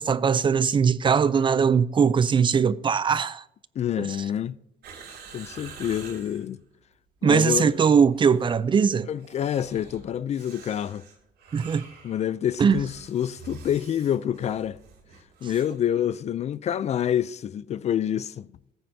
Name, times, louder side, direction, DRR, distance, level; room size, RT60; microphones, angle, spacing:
voice 1, 0.0-3.4 4.0-4.2 7.2-9.1 11.5-11.9 12.6-12.8, right 6 dB, 30° right, 0.4 m, -21 dB
voice 2, 3.8-4.6 5.3-6.6 7.2-7.8 9.1-11.0 12.0-14.8 15.4-18.5, left 10 dB, 40° left, 0.4 m, -27 dB
sound 1, 4.8-6.5 7.2-8.6 9.2-15.8 16.0-16.1, right 5 dB, 75° right, 3.1 m, -47 dB
15.0 x 9.2 x 2.7 m
cardioid pair, 110°, 17 cm